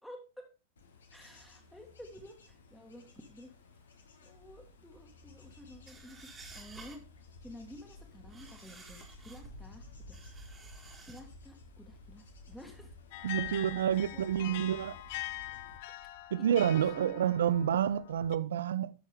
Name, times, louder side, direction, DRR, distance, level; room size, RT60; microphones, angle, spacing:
Bird / Insect / Wind, 0.8-15.8, left 2 dB, 70° left, 1.6 m, -54 dB
voice 1, 1.1-3.5 4.2-6.2 6.5-7.0 7.4-10.2 11.0-13.0 13.3-13.4 13.7-14.6 16.4-16.7 17.0-17.3, left 1 dB, 5° left, 1.7 m, -52 dB
sound 1, 5.9-7.1 8.1-9.6 10.1-11.2, right 4 dB, 15° right, 1.9 m, -53 dB
sound 2, 13.1-18.4, left 17 dB, 50° left, 0.5 m, -43 dB
voice 2, 13.2-15.0 16.3-18.9, right 9 dB, 65° right, 0.5 m, -29 dB
12.0 x 6.3 x 3.6 m
figure-of-eight pair, 90°, 0 cm